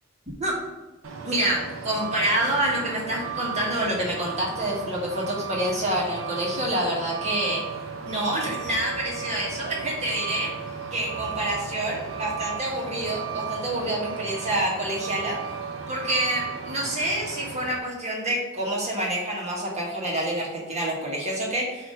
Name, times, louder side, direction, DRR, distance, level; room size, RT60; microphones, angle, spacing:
Truck, 1.0-17.8, right 6 dB, 90° right, 0.8 m, -35 dB
voice 1, 1.2-7.6 8.0-10.5 10.9-15.4 15.9-21.9, right 1 dB, 35° right, -4 dB, 1.7 m, -27 dB
6.0 x 3.1 x 5.2 m, 1.1 s
head